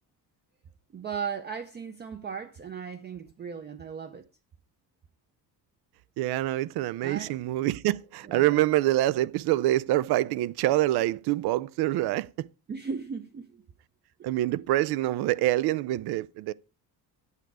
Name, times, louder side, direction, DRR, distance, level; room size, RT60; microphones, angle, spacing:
voice 1, 0.9-4.2 7.0-7.4 8.2-8.6 12.7-13.6 14.2-14.3, right 6 dB, 30° right, 0.5 m, -37 dB
voice 2, 6.2-12.5 14.2-16.5, right 15 dB, 85° right, 0.5 m, -26 dB
9.1 x 8.3 x 4.7 m
cardioid pair, 170°, 37 cm